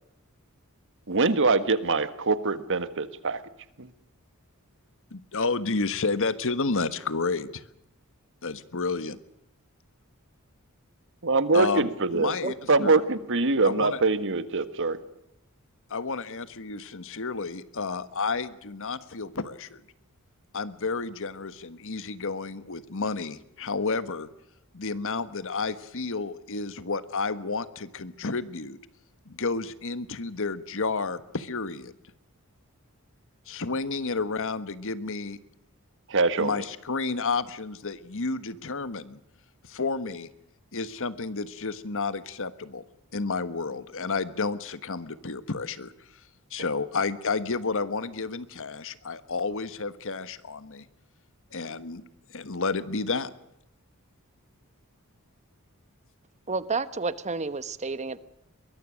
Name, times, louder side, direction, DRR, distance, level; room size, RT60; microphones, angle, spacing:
voice 1, 1.1-3.4 3.8-3.9 11.2-12.3 12.7-15.0 36.1-36.6, right 3 dB, 60° right, 13 dB, 1.6 m, -24 dB
voice 2, 5.1-7.6 8.4-9.2 11.5-12.5 12.8-12.9 13.6-14.0 15.9-19.8 20.5-24.3 24.7-28.8 29.3-31.9 33.5-35.4 36.4-39.2 39.6-40.3 40.7-42.8 43.1-45.9 46.5-50.8 51.5-52.0 52.3-53.3, left 4 dB, 60° left, 14 dB, 1.4 m, -31 dB
voice 3, 56.5-58.2, right 4 dB, 30° right, 14 dB, 1.2 m, -30 dB
23.0 x 21.5 x 6.4 m, 0.81 s
head